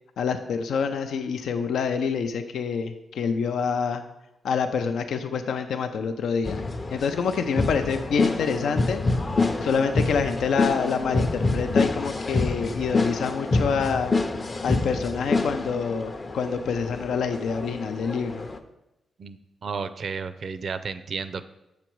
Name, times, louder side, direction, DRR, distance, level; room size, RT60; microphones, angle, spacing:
voice 1, 0.2-4.0 4.4-6.6 6.9-9.0 9.6-14.1 14.6-18.5, left 6 dB, 80° left, 8 dB, 0.4 m, -27 dB
sound 1, 6.4-18.6, left 3 dB, 35° left, 0.6 m, -27 dB
voice 2, 19.2-21.4, right 5 dB, 60° right, 13 dB, 0.4 m, -33 dB
7.0 x 5.1 x 4.5 m, 0.93 s
cardioid pair, 70°, 0 cm